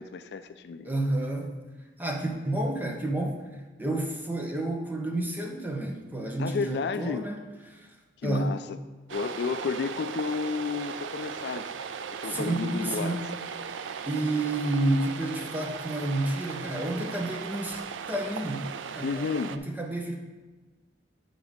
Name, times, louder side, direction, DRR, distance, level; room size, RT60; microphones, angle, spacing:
voice 1, 0.0-0.9 6.4-7.2 8.2-8.8 9.1-11.7 12.1-13.3 19.0-19.5, left 5 dB, 60° left, 10 dB, 0.3 m, -32 dB
voice 2, 0.8-1.5 2.0-3.4 3.8-7.4 7.7-7.9 8.2-8.6 12.3-13.2 14.1-17.8 18.1-18.7 19.0-20.2, right 1 dB, 10° right, 2 dB, 0.7 m, -30 dB
sound 1, 9.1-19.6, right 6 dB, 90° right, 0.4 m, -37 dB
8.8 x 3.9 x 4.9 m, 1.3 s
head